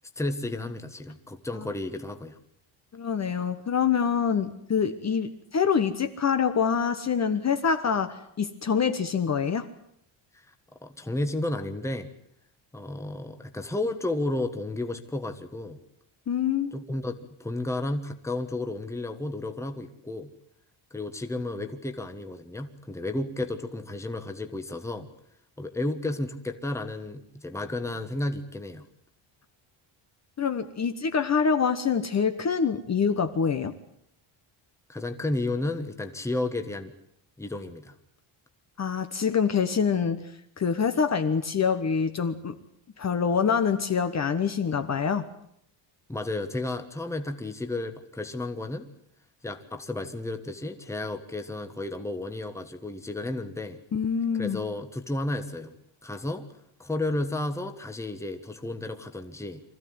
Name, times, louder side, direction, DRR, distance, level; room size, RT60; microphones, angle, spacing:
voice 1, 0.2-2.4 10.5-10.6 10.8-12.1 12.7-15.8 16.7-17.1 17.4-20.3 20.9-25.1 25.6-28.8 34.9-36.9 37.4-37.9 46.1-48.9 49.4-53.8 54.4-55.7 56.0-56.5 56.8-59.6, left 2 dB, 5° left, 7 dB, 1.3 m, -32 dB
voice 2, 2.9-9.7 16.3-16.7 30.4-33.7 38.8-40.2 40.6-42.5 43.0-45.3 53.9-54.6, left 6 dB, 35° left, 8 dB, 1.2 m, -25 dB
25.0 x 15.0 x 9.6 m, 0.72 s
cardioid pair, 170°, 49 cm